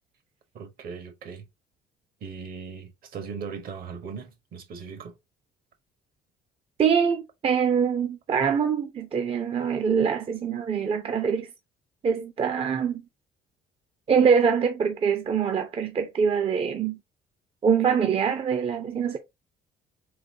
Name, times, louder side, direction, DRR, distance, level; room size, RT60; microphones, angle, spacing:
voice 1, 0.5-1.5 2.2-5.2, right 6 dB, 60° right, 1.2 m, -38 dB
voice 2, 6.8-11.5 12.0-13.0 14.1-17.0 17.6-19.2, right 6 dB, 35° right, 0.6 m, -24 dB
4.0 x 3.0 x 2.6 m
cardioid pair, 110°, 17 cm